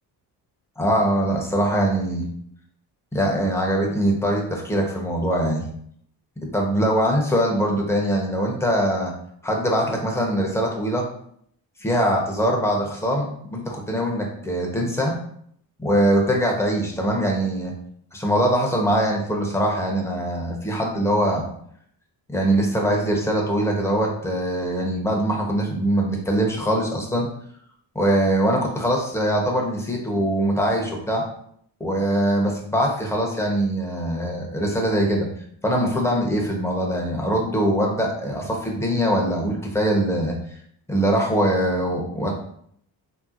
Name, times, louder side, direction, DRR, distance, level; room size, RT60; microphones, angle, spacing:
voice 1, 0.8-2.3 3.1-5.6 6.4-9.1 9.4-11.1 11.8-15.2 15.8-17.7 18.1-21.5 22.3-27.3 27.9-31.2 31.8-35.3 35.6-40.3 40.9-42.3, right 1 dB, 5° left, 0 dB, 0.9 m, -22 dB
3.4 x 2.9 x 2.5 m, 0.66 s
supercardioid pair, 60°, 48 cm